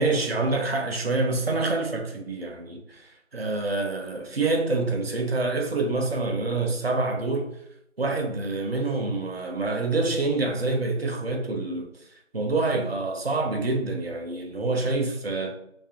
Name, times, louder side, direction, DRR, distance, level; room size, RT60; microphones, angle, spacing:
voice 1, 0.0-7.6 8.0-11.9 12.3-15.6, right 3 dB, 55° right, 0.4 m, -26 dB
2.5 x 2.4 x 2.3 m
figure-of-eight pair, 170°, 38 cm